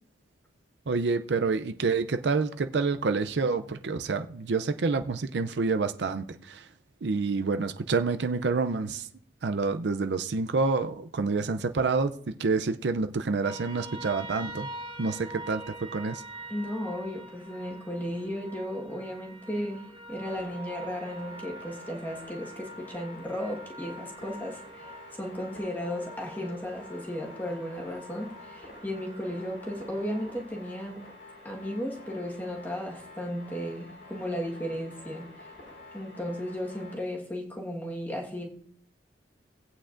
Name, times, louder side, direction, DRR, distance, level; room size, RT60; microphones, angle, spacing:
voice 1, 0.9-6.7 7.0-9.1 9.4-14.7 15.0-16.2, right 4 dB, 80° right, 0.5 m, -28 dB
sound 1, 13.4-30.4, right 2 dB, 25° right, 1.1 m, -45 dB
voice 2, 16.5-31.0 31.4-35.5 35.9-38.5, equal, 10° left, 1.5 m, -35 dB
sound 2, 20.2-36.9, left 2 dB, 80° left, 4.5 m, -49 dB
18.0 x 8.5 x 2.5 m
head